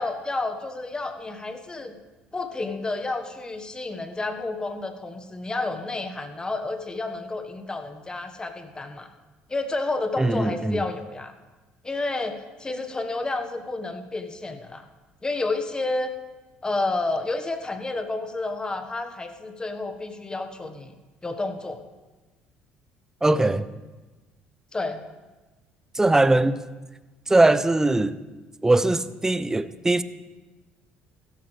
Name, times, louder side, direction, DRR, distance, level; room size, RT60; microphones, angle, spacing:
voice 1, 0.0-1.9 2.3-9.1 9.5-11.3 11.8-14.8 15.2-16.1 16.6-20.9 21.2-21.8 24.7-25.0, left 2 dB, 20° left, 1.4 m, -30 dB
voice 2, 10.2-10.8 23.2-23.7 25.9-26.6 27.3-28.2 28.6-30.0, right 2 dB, 15° right, 0.6 m, -20 dB
16.0 x 13.0 x 3.4 m
supercardioid pair, 80°, 4 cm